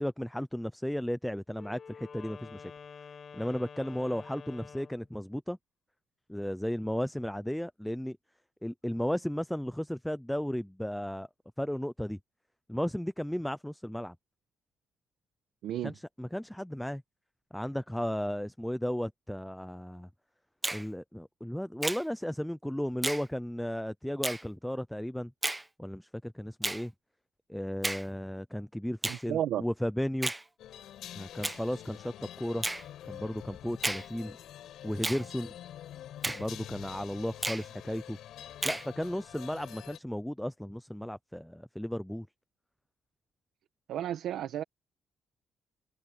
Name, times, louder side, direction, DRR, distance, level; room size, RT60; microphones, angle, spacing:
voice 1, 0.0-2.7 3.3-5.6 6.3-8.2 8.6-11.3 11.6-12.2 12.7-14.2 15.8-17.0 17.5-20.1 20.7-25.3 25.8-26.9 27.5-30.3 31.1-32.6 33.0-34.4 34.8-35.5 36.3-38.2 38.6-42.3, equal, 5° left, 0.6 m, -34 dB
Wind instrument woodwind instrument, 1.5-5.1, left 6 dB, 45° left, 4.5 m, -48 dB
Finger snapping, 20.6-20.9 21.8-22.0 23.0-23.3 24.2-24.4 25.4-25.6 26.6-26.8 27.8-28.1 29.0-29.2 30.2-30.4 31.4-31.6 32.6-32.8 33.8-34.1 35.0-35.2 36.2-36.4 37.4-37.7 38.6-38.9, right 1 dB, 10° right, 1.4 m, -32 dB
voice 2, 29.1-29.6 43.9-44.6, right 11 dB, 75° right, 1.7 m, -32 dB
sound 1, 30.6-40.0, left 11 dB, 75° left, 7.7 m, -47 dB
open air
cardioid pair, 90°, 0 cm